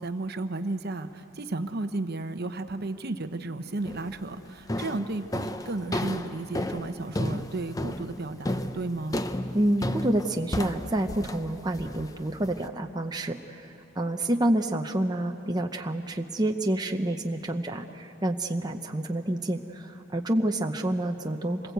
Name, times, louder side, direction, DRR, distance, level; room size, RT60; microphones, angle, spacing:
voice 1, 0.0-9.2, right 2 dB, 50° right, 9 dB, 0.9 m, -33 dB
sound 1, 3.9-4.2 4.7-12.7, left 1 dB, 15° left, 0.6 m, -33 dB
voice 2, 9.5-21.7, right 1 dB, 20° right, 3 dB, 0.7 m, -28 dB
27.0 x 20.5 x 8.1 m, 2.8 s
head